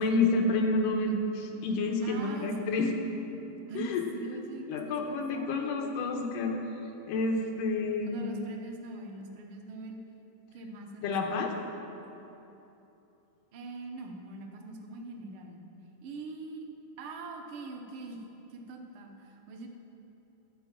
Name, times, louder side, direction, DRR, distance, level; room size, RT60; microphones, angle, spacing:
voice 1, 0.0-2.9 3.3-3.4 3.8-4.0 4.7-6.6 7.1-8.4 11.0-11.5, left 3 dB, 85° left, 3 dB, 2.5 m, -29 dB
voice 2, 2.0-2.7 3.7-4.8 5.1-5.9 8.1-10.0 10.5-11.4 13.5-15.6 16.0-16.7 17.0-18.2 18.5-19.7, right 2 dB, 80° right, 2 dB, 1.1 m, -42 dB
13.0 x 5.2 x 7.5 m, 3.0 s
omnidirectional pair, 3.7 m